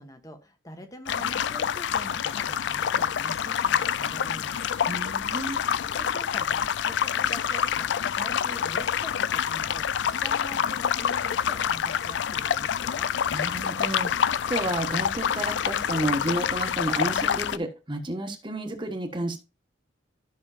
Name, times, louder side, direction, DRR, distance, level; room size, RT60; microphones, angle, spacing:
voice 1, 0.0-4.6 5.8-13.1, equal, 20° left, 6 dB, 1.2 m, -44 dB
sound 1, 1.1-17.6, left 8 dB, 65° left, 0.3 m, -27 dB
voice 2, 4.9-5.6 13.3-19.4, right 1 dB, 25° right, 5 dB, 1.2 m, -31 dB
13.0 x 6.2 x 2.4 m, 0.28 s
head